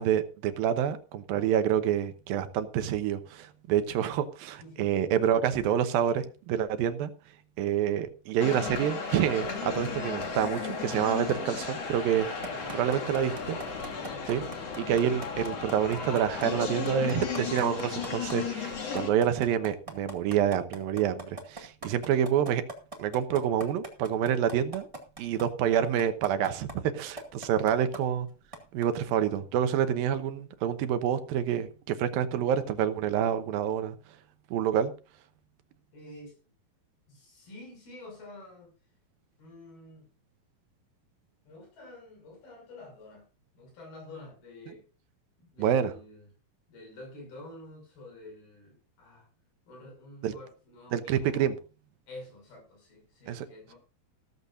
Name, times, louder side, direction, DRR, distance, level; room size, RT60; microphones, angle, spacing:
voice 1, 0.0-7.1 7.6-12.3 12.7-13.6 14.3-14.4 14.8-22.6 23.0-24.9 25.2-28.3 28.7-34.0 34.5-34.9 45.6-45.9 50.2-50.3 50.9-51.5 53.3-53.5, right 9 dB, 80° right, 10 dB, 2.7 m, -27 dB
voice 2, 4.5-4.9 12.4-13.3 13.8-14.7 27.2-27.9 35.9-36.4 37.1-38.7 39.4-40.1 41.5-43.3 43.5-44.9 45.5-46.3 46.7-49.3 49.7-51.5 52.1-53.8, left 1 dB, 80° left, 1 dB, 8.1 m, -49 dB
sound 1, 8.4-19.1, left 5 dB, 45° left, 3.0 m, -35 dB
sound 2, 12.4-18.3 18.7-25.4 26.0-26.7 27.2-28.0 28.5-28.8, right 2 dB, 15° right, 1.1 m, -40 dB
15.5 x 14.0 x 2.6 m, 0.33 s
omnidirectional pair, 4.3 m